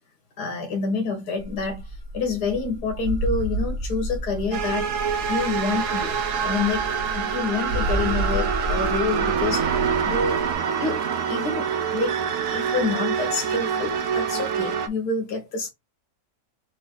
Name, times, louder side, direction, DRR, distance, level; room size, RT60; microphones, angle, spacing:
voice 1, 0.4-1.8 2.1-4.9 5.3-6.9 7.1-9.8 10.0-10.4 10.8-11.0 11.3-12.1 12.5-15.7, left 4 dB, 70° left, 1.9 m, -27 dB
sound 1, 1.4-10.5, right 1 dB, 45° right, 1.5 m, -31 dB
sound 2, 4.5-14.9, right 7 dB, 65° right, 0.9 m, -26 dB
4.3 x 2.8 x 3.7 m
omnidirectional pair, 1.7 m